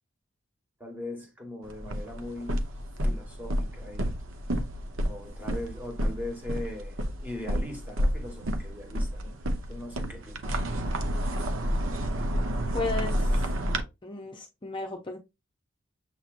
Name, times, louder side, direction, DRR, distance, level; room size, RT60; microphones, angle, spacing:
voice 1, 0.8-2.6 3.0-4.2 5.0-6.9 7.2-9.4 9.7-10.4, left 1 dB, 10° right, 1.4 m, -40 dB
sound 1, 1.6-13.8, equal, 90° right, 0.8 m, -30 dB
voice 2, 12.7-13.4 14.0-15.2, left 3 dB, 25° left, 0.6 m, -34 dB
7.3 x 2.9 x 2.5 m
head